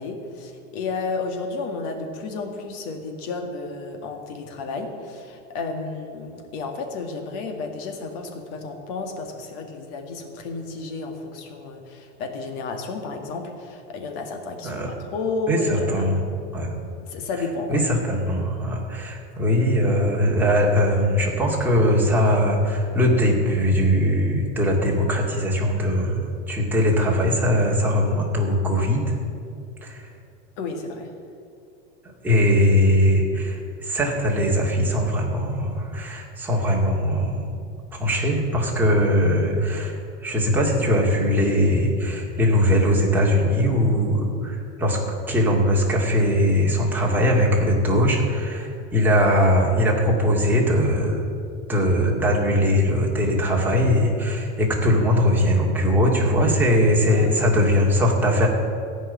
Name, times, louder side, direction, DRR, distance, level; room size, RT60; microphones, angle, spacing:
voice 1, 0.0-14.8 15.1-16.1 17.0-17.8 30.6-31.1 54.8-54.9 57.1-57.6, left 3 dB, 60° left, 4 dB, 2.1 m, -32 dB
voice 2, 15.5-16.2 16.5-16.7 17.7-29.2 29.8-30.1 32.2-37.5 37.9-45.0 45.3-51.2 51.7-58.5, equal, 5° right, -3 dB, 2.2 m, -20 dB
15.5 x 5.5 x 9.8 m, 2.5 s
supercardioid pair, 145°, 34 cm